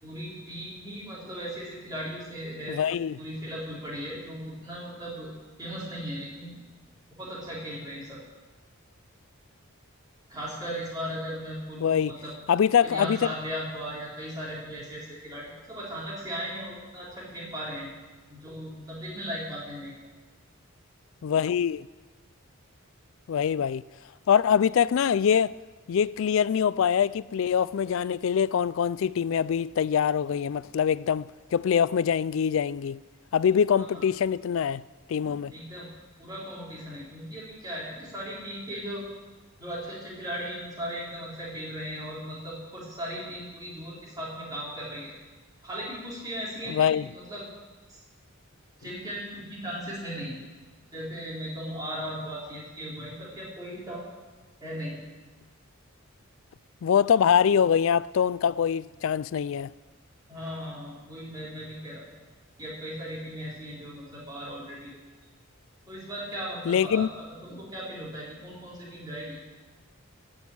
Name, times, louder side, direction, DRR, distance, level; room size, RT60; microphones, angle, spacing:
voice 1, 0.0-2.8 3.2-5.3 5.6-6.6 7.2-8.2 10.3-12.3 12.8-17.9 18.3-19.9 33.7-34.0 35.2-35.9 36.2-39.0 39.6-45.1 45.6-47.5 47.9-48.0 48.8-50.3 50.9-54.1 54.6-55.0 60.3-62.0 62.6-65.0 65.9-69.4, equal, 20° right, 4.0 m, -37 dB
voice 2, 2.7-3.2 11.8-12.1 12.5-13.3 21.2-21.9 23.3-23.8 24.3-25.5 25.9-33.0 33.3-34.8 35.1-35.5 46.7-47.1 56.8-59.7 66.7-67.1, left 8 dB, 65° left, 0.3 m, -24 dB
16.0 x 6.3 x 8.6 m
head